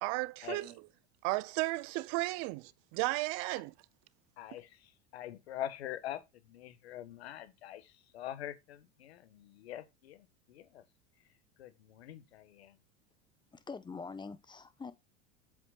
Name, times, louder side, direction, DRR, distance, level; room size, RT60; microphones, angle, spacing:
voice 1, 0.0-0.7 1.2-3.7, right 22 dB, 60° right, 0.8 m, -34 dB
voice 2, 4.4-10.8 11.6-12.8, left 12 dB, 85° left, 1.6 m, -44 dB
voice 3, 13.5-14.9, left 4 dB, 15° left, 1.2 m, -44 dB
8.0 x 7.9 x 2.4 m
supercardioid pair, 105°, 31 cm